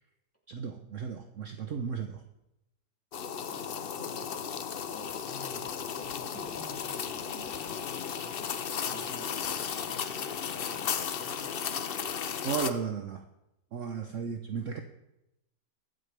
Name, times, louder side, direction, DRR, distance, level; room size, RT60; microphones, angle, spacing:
voice 1, 0.5-2.2 12.4-13.2 13.7-14.8, right 6 dB, 55° right, 6 dB, 1.0 m, -34 dB
sound 1, 3.1-12.7, left 7 dB, 60° left, 0.5 m, -35 dB
voice 2, 3.4-8.5 8.8-11.5, equal, 10° left, -3 dB, 2.7 m, -51 dB
23.5 x 8.3 x 3.4 m, 0.88 s
omnidirectional pair, 1.8 m